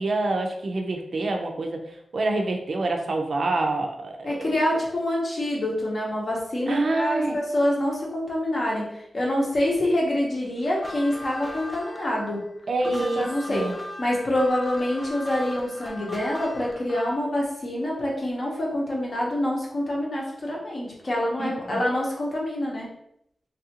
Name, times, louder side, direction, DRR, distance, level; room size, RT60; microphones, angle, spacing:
voice 1, 0.0-1.8 2.1-4.5 6.7-7.4 12.7-13.7 21.4-21.8, right 2 dB, 55° right, 3 dB, 0.4 m, -27 dB
voice 2, 4.2-12.4 13.2-13.6 14.0-22.9, left 1 dB, 45° left, -3 dB, 0.8 m, -26 dB
sound 1, 10.7-17.2, left 1 dB, 10° left, 0.4 m, -39 dB
3.3 x 2.4 x 2.9 m, 0.76 s
wide cardioid pair, 160°, 0 cm